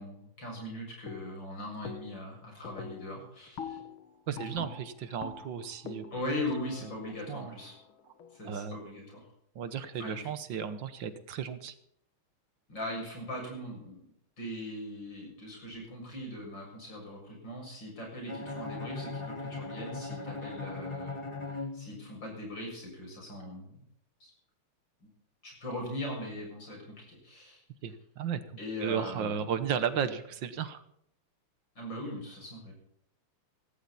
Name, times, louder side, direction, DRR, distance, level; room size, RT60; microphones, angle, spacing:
voice 1, 0.0-3.8 4.3-4.7 6.1-7.7 8.3-9.2 9.9-10.4 12.7-14.0 14.4-23.8 24.2-24.3 25.0-25.1 25.4-27.6 28.6-29.6 31.8-32.7, left 1 dB, 55° left, 0 dB, 7.9 m, -40 dB
sound 1, 1.1-1.5 1.8-2.3 2.6-8.5, left 6 dB, 75° left, 2.4 m, -45 dB
voice 2, 4.3-6.1 6.8-6.9 7.3-7.6 8.5-8.8 9.6-11.8 27.8-28.4 28.8-30.8, right 8 dB, 65° right, 12 dB, 1.8 m, -34 dB
Bowed string instrument, 18.3-22.4, left 3 dB, 15° left, 1.5 m, -39 dB
16.5 x 16.5 x 4.2 m, 0.71 s
omnidirectional pair, 2.3 m